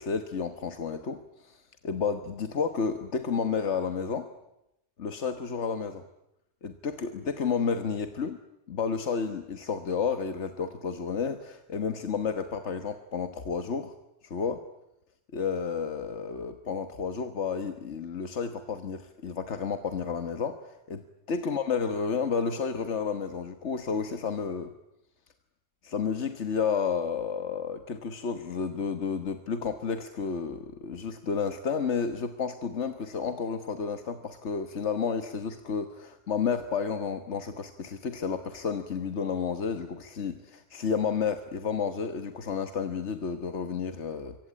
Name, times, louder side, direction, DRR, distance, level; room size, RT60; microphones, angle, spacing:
voice 1, 0.0-4.3 5.0-6.0 6.6-8.4 8.7-13.9 14.2-14.6 15.3-24.7 25.8-44.4, left 6 dB, 85° left, 8 dB, 1.7 m, -31 dB
25.5 x 24.5 x 8.8 m, 0.85 s
omnidirectional pair, 1.1 m